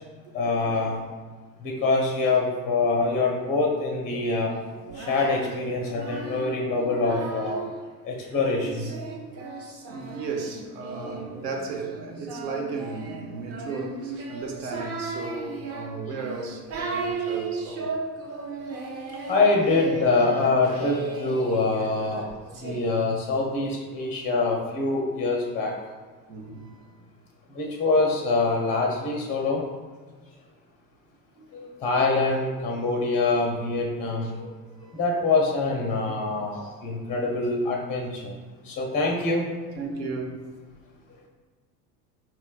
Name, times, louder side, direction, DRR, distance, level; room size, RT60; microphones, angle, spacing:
voice 1, 0.3-1.0 1.6-4.5 4.9-7.6 8.0-8.9 19.2-22.3 22.6-25.7 27.5-29.6 31.5-34.6 34.9-38.4 38.6-39.5, left 3 dB, 20° left, 0 dB, 0.4 m, -25 dB
Singing, 4.7-7.8 8.3-22.8, right 4 dB, 30° right, 0.6 m, -36 dB
voice 2, 9.9-17.9 26.3-27.0 31.3-31.5 34.8-35.0 39.8-40.3, right 4 dB, 70° right, 3 dB, 0.8 m, -35 dB
4.2 x 3.1 x 2.3 m, 1.4 s
figure-of-eight pair, 75°, 50 cm